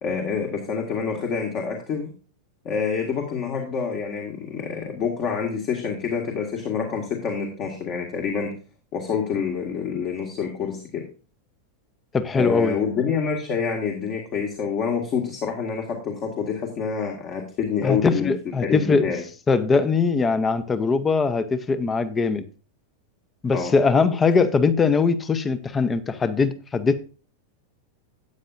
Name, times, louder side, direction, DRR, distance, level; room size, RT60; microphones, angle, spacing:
voice 1, 0.0-2.1 2.6-8.6 8.9-11.0 12.3-18.3 18.6-19.2 23.5-23.8, left 6 dB, 35° left, 1.9 m, -27 dB
voice 2, 12.1-12.8 17.8-19.0 19.5-22.4 23.4-27.0, left 4 dB, 20° left, 0.9 m, -21 dB
12.5 x 9.1 x 2.6 m
figure-of-eight pair, 90°, 0 cm